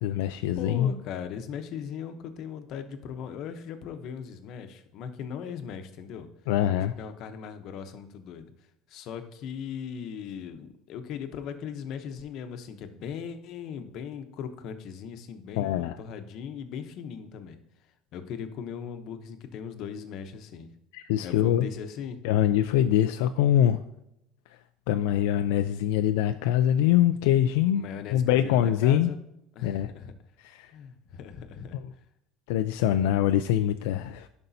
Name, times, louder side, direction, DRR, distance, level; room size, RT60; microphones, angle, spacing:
voice 1, 0.0-0.9 6.5-6.9 15.6-16.0 20.9-21.7 22.2-23.8 24.9-27.8 28.1-29.1 29.6-29.9 30.4-30.7 32.5-34.3, left 11 dB, 90° left, 8 dB, 0.3 m, -24 dB
voice 2, 0.6-6.3 7.0-8.5 8.9-17.6 18.1-20.7 21.2-22.2 27.7-29.2 29.6-30.1 30.7-31.8 32.8-33.1, left 7 dB, 60° left, 8 dB, 0.8 m, -38 dB
11.0 x 5.3 x 2.7 m, 0.82 s
cardioid pair, 125°, 0 cm